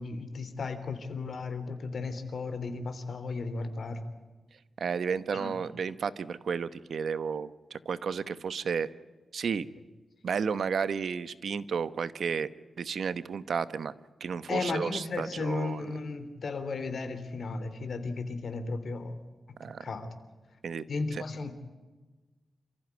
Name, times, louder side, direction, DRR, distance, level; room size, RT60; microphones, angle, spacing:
voice 1, 0.0-4.0 5.3-5.5 14.5-19.2 19.8-20.1 20.9-21.5, left 4 dB, 60° left, 9 dB, 3.3 m, -35 dB
voice 2, 4.8-8.9 9.3-9.7 10.2-12.5 12.8-13.9 14.2-15.9 19.6-19.8 20.6-20.8 21.1-21.2, right 6 dB, 70° right, 14 dB, 1.1 m, -32 dB
28.0 x 15.0 x 9.6 m, 1.3 s
wide cardioid pair, 105°, 0 cm